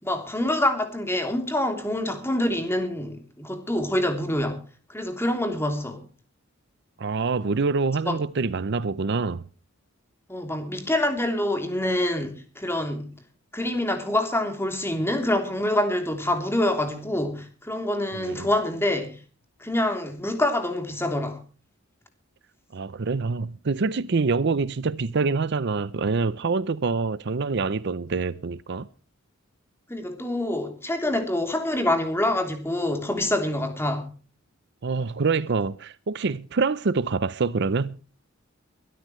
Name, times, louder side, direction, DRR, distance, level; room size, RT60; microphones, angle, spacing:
voice 1, 0.0-4.6 4.9-6.0 8.1-8.2 10.3-13.1 13.5-19.2 19.6-21.4 29.9-34.1, left 1 dB, 10° left, 3.2 m, -26 dB
voice 2, 7.0-9.4 18.1-18.5 22.7-28.9 34.8-38.0, right 4 dB, 55° right, 0.6 m, -26 dB
23.5 x 13.0 x 3.1 m
head